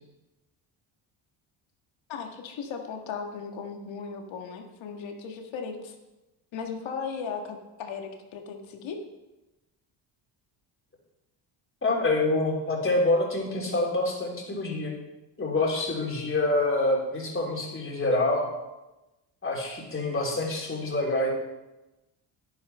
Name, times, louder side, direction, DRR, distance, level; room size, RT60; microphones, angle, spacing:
voice 1, 2.1-6.0 6.5-9.0, left 5 dB, 75° left, 4 dB, 1.8 m, -37 dB
voice 2, 11.8-14.9 15.4-18.5 19.4-21.3, left 2 dB, 25° left, -2 dB, 3.6 m, -26 dB
11.0 x 10.5 x 4.4 m, 1.0 s
cardioid pair, 90°, 47 cm